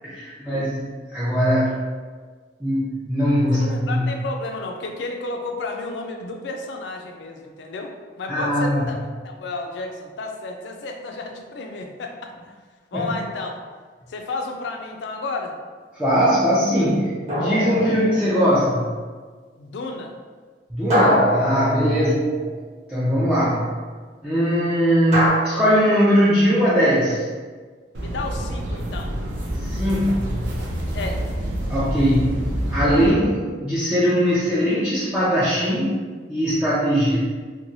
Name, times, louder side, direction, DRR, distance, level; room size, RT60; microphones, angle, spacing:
voice 1, 0.0-1.8 2.6-4.1 8.3-8.8 12.9-13.1 16.0-18.9 20.7-22.4 22.9-23.7 24.2-27.3 29.6-30.4 31.7-32.4 32.7-36.0 36.3-37.2, equal, 5° right, -10 dB, 0.4 m, -20 dB
voice 2, 3.5-9.0 9.2-12.3 12.9-13.6 14.1-15.6 19.6-20.1 21.9-22.2 28.0-29.2 30.9-31.2 36.6-36.8, left 3 dB, 80° left, 3 dB, 0.4 m, -32 dB
sound 1, 17.3-18.5 20.9-22.6 25.1-25.3, equal, 40° right, 0.9 m, -23 dB
sound 2, 27.9-33.1, right 1 dB, 85° right, 0.5 m, -27 dB
2.9 x 2.2 x 2.6 m, 1.5 s
head